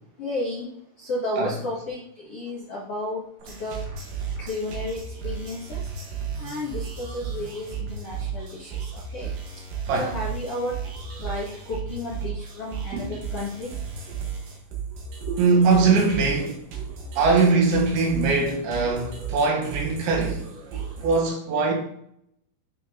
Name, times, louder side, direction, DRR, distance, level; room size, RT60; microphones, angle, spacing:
voice 1, 0.2-0.7 1.0-2.0 2.3-3.8 4.5-5.8 6.4-9.3 9.9-10.7 11.2-13.7 15.3-15.4, left 2 dB, 80° left, 1.3 m, -32 dB
sound 1, 3.4-21.2, right 6 dB, 60° right, 2.4 m, -34 dB
voice 2, 15.4-16.6 17.2-20.5 21.0-21.7, right 4 dB, 80° right, 3.7 m, -21 dB
9.7 x 4.2 x 3.7 m
omnidirectional pair, 5.3 m